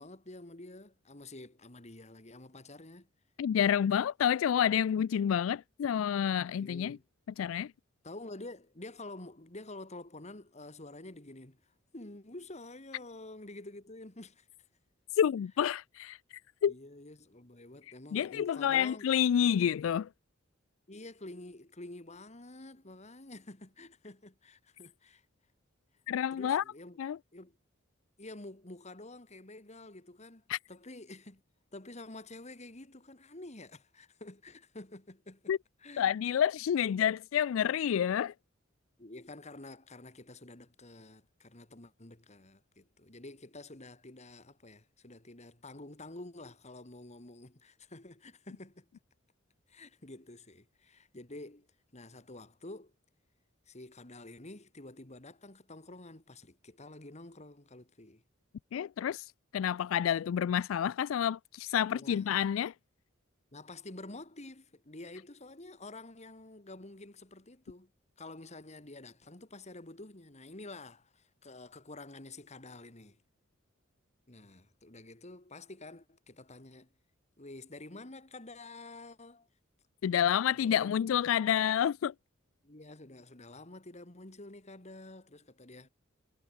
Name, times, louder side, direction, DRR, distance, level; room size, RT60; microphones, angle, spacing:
voice 1, 0.0-3.1 6.6-7.0 8.0-14.5 16.7-19.1 20.9-25.2 26.3-27.0 27.3-27.6 28.2-31.4 31.7-35.5 35.8-36.1 39.0-48.9 49.7-51.7 51.9-52.9 53.7-58.2 61.9-62.4 63.5-67.9 68.2-73.2 74.3-76.9 77.4-79.5 80.5-81.0 82.6-85.9, left 2 dB, 35° left, 2.5 m, -49 dB
voice 2, 3.4-7.0 7.4-7.7 15.1-16.2 16.6-16.7 18.1-20.1 26.1-26.6 27.0-27.2 30.5-30.6 35.5-35.6 36.0-38.3 58.7-62.7 80.0-82.1, left 9 dB, 80° left, 0.3 m, -29 dB
head